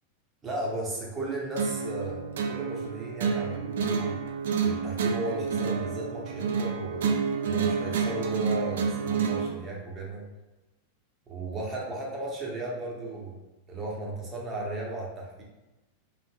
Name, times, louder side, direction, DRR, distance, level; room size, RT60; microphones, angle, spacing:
voice 1, 0.4-4.2 4.6-7.2 7.4-10.2 11.3-13.4 13.7-15.4, right 2 dB, 25° right, -3 dB, 0.8 m, -35 dB
sound 1, 1.6-9.5, right 6 dB, 60° right, 0.3 m, -29 dB
3.2 x 2.5 x 2.3 m, 1.0 s
figure-of-eight pair, 90°, 0 cm